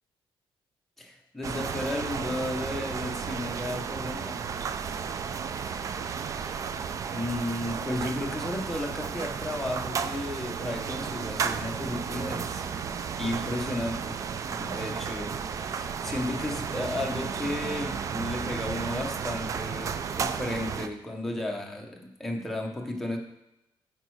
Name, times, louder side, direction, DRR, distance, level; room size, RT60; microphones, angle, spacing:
voice 1, 1.0-4.4 6.4-6.7 7.1-12.7 13.2-23.2, left 1 dB, 5° left, 1 dB, 0.8 m, -34 dB
sound 1, 1.4-20.9, right 6 dB, 35° right, 0.3 m, -33 dB
8.7 x 4.5 x 4.6 m, 0.90 s
cardioid pair, 175°, 10 cm